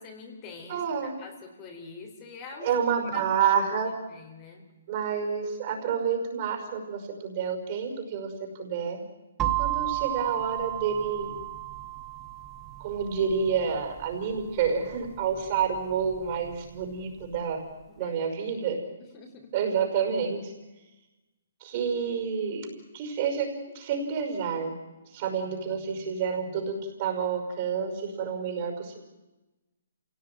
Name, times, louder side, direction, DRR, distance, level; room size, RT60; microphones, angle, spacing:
voice 1, 0.0-2.7 3.1-3.2 4.1-4.6 18.0-18.1 18.4-18.6 19.1-19.5 25.5-26.1 26.5-26.6, left 4 dB, 25° left, 2 dB, 4.0 m, -45 dB
voice 2, 0.7-1.2 2.6-4.0 4.9-9.0 9.4-11.3 12.8-17.6 18.0-18.8 19.5-20.5 21.6-24.7 25.1-29.0, right 6 dB, 35° right, 4 dB, 5.7 m, -29 dB
sound 1, 9.4-17.2, right 14 dB, 15° right, 1.6 m, -34 dB
27.0 x 17.5 x 9.3 m, 1.1 s
hypercardioid pair, 160°, 0 cm